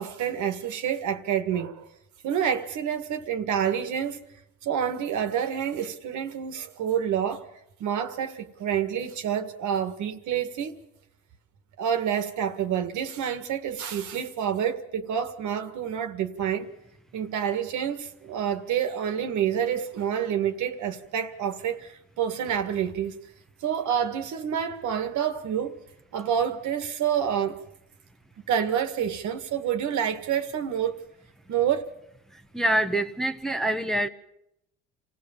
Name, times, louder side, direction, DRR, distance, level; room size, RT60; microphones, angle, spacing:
voice 1, 0.0-1.9 2.2-4.3 4.6-7.5 7.8-10.8 11.8-16.7 17.1-23.2 23.6-25.8 26.1-27.6 28.5-31.0 31.5-31.9, right 8 dB, 70° right, 1.9 m, -28 dB
voice 2, 32.3-34.1, right 1 dB, ahead, 1.1 m, -26 dB
27.5 x 16.5 x 7.4 m
cardioid pair, 95°, 30 cm